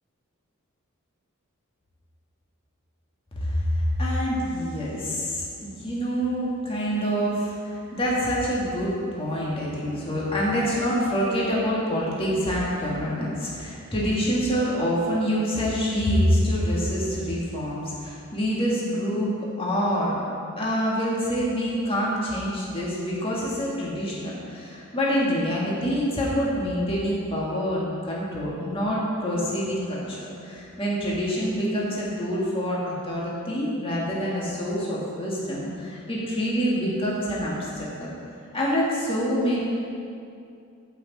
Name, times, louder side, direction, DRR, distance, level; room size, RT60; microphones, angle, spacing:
voice 1, 3.4-19.3 19.6-20.2 20.6-38.1 38.5-39.6, equal, 25° left, -6 dB, 2.0 m, -26 dB
14.5 x 6.2 x 4.2 m, 2.5 s
head